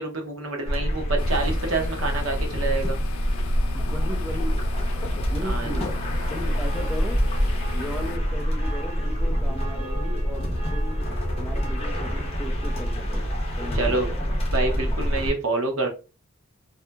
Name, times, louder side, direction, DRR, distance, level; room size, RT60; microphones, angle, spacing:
voice 1, 0.0-3.0 5.4-5.8 13.7-15.9, right 3 dB, 75° right, 3 dB, 0.8 m, -27 dB
sound 1, 0.6-15.3, equal, 30° left, 0.7 m, -26 dB
sound 2, 1.2-8.2, left 5 dB, 85° left, 0.3 m, -37 dB
voice 2, 3.7-4.6 5.3-7.2 7.7-11.1 11.4-14.2, equal, 5° left, 3 dB, 0.4 m, -37 dB
sound 3, 6.6-14.3, right 2 dB, 30° right, 1.2 m, -42 dB
2.6 x 2.6 x 2.2 m, 0.30 s
head